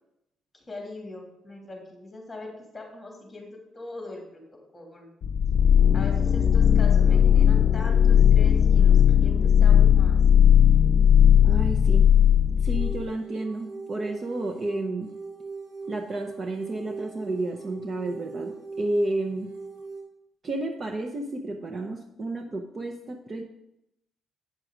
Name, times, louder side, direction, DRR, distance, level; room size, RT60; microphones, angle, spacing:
voice 1, 0.5-4.4 4.7-5.1 5.9-10.2, left 2 dB, 15° left, 0 dB, 2.9 m, -41 dB
sound 1, 5.2-13.1, left 9 dB, 50° left, 0.6 m, -18 dB
voice 2, 11.4-12.1 12.6-15.1 15.9-19.5 20.4-23.4, right 2 dB, 30° right, 5 dB, 0.7 m, -31 dB
sound 2, 12.7-20.0, right 4 dB, 85° right, 3.4 m, -40 dB
8.9 x 6.3 x 5.0 m, 0.86 s
cardioid pair, 130°, 0 cm